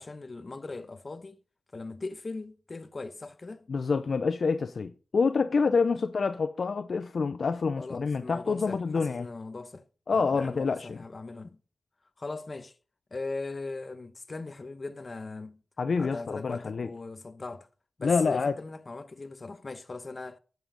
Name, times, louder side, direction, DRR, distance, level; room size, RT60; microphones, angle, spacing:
voice 1, 0.0-1.4 1.7-3.7 7.8-11.6 12.2-12.7 13.1-15.6 16.0-17.7 18.0-20.4, left 3 dB, 50° left, 1.0 m, -39 dB
voice 2, 3.7-9.3 10.1-11.0 15.8-16.9 18.0-18.5, left 4 dB, 70° left, 0.5 m, -27 dB
8.9 x 7.5 x 5.1 m
cardioid pair, 45°, 0 cm